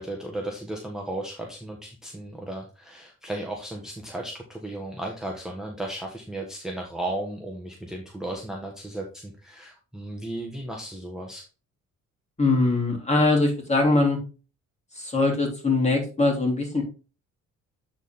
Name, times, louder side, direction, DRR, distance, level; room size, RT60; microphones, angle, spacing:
voice 1, 0.0-11.4, right 1 dB, ahead, 0 dB, 1.5 m, -35 dB
voice 2, 12.4-14.2 15.0-16.8, left 2 dB, 20° left, 1 dB, 3.4 m, -22 dB
9.0 x 4.4 x 3.6 m, 0.34 s
cardioid pair, 90°, 30 cm